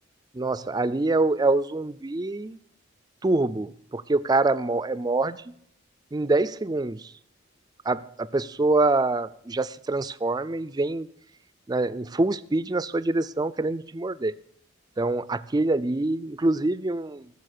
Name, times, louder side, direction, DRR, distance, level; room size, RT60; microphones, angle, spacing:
voice 1, 0.3-2.6 3.2-5.5 6.1-7.1 7.8-11.1 11.7-14.3 15.0-17.3, right 2 dB, 20° right, 0.4 m, -25 dB
16.0 x 6.9 x 6.6 m
head